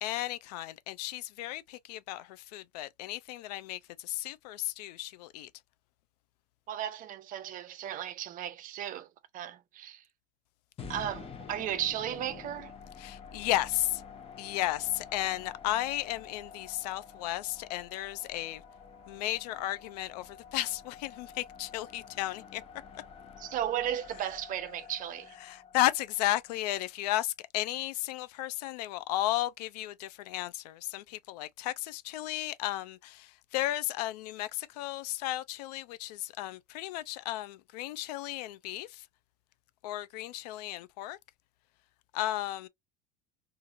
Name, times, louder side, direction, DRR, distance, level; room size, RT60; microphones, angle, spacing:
voice 1, 0.0-5.5 13.0-14.0 14.4-18.6 19.1-22.6 25.4-39.1 39.8-41.2 42.1-42.7, left 15 dB, 70° left, 0.4 m, -34 dB
voice 2, 6.7-9.1 9.3-10.0 10.9-12.7 23.4-25.3, right 11 dB, 40° right, 0.5 m, -35 dB
sound 1, 10.8-26.9, left 6 dB, 25° left, 0.8 m, -49 dB
2.8 x 2.5 x 2.5 m
hypercardioid pair, 85°, 21 cm